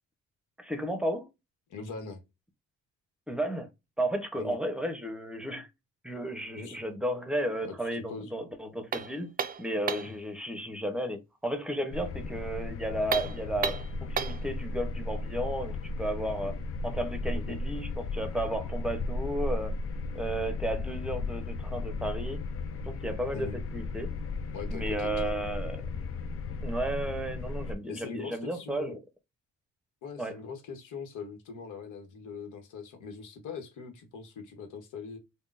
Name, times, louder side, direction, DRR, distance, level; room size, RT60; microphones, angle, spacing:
voice 1, 0.6-1.3 3.3-3.7 4.0-5.7 6.0-9.3 9.6-16.5 16.8-19.7 20.1-22.4 22.8-24.1 24.7-25.8 26.6-29.0 30.2-30.4, right 1 dB, 5° right, 0.8 m, -33 dB
voice 2, 1.7-2.2 4.4-4.6 6.6-6.8 7.6-8.3 10.1-10.2 12.2-12.3 17.5-17.6 23.3-23.6 24.5-25.3 27.9-29.0 30.0-35.2, left 5 dB, 80° left, 1.1 m, -41 dB
sound 1, 8.9-10.2 13.0-14.5, right 7 dB, 30° right, 0.4 m, -33 dB
sound 2, 11.9-27.8, left 3 dB, 50° left, 0.5 m, -35 dB
3.6 x 2.2 x 2.5 m
cardioid pair, 90°, 30 cm